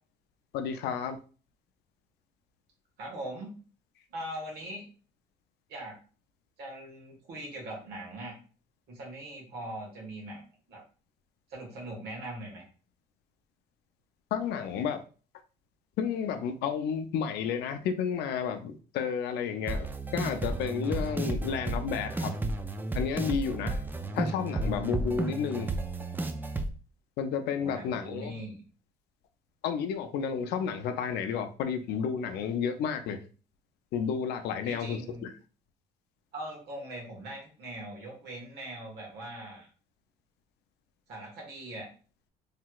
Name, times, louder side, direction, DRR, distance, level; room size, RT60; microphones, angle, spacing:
voice 1, 0.5-1.2 14.3-15.0 16.0-22.4 22.9-23.8 24.1-25.7 27.2-28.3 29.6-33.2 33.9-35.3, left 7 dB, 75° left, 7 dB, 0.4 m, -31 dB
voice 2, 3.0-3.5 4.1-4.8 5.7-6.0 6.6-8.4 8.9-10.4 10.7-10.8 11.5-12.6 27.6-28.6 34.6-35.3 36.3-39.7 41.1-41.9, right 1 dB, 75° right, -1 dB, 1.5 m, -41 dB
sound 1, 19.7-26.7, right 2 dB, 10° right, 0.3 m, -32 dB
3.3 x 2.8 x 2.3 m, 0.38 s
cardioid pair, 110°, 17 cm